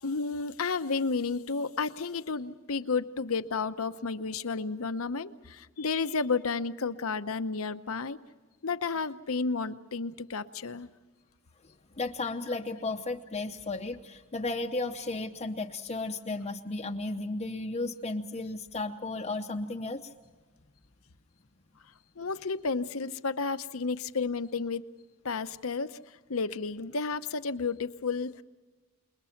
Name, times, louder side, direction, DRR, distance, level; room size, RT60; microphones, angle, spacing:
voice 1, 0.0-8.2 8.6-10.9 22.2-24.8 25.2-26.0 26.3-28.4, left 4 dB, 70° left, 11 dB, 0.9 m, -32 dB
voice 2, 12.0-20.0, left 2 dB, 30° left, 3 dB, 0.8 m, -34 dB
28.5 x 21.5 x 5.9 m, 1.2 s
head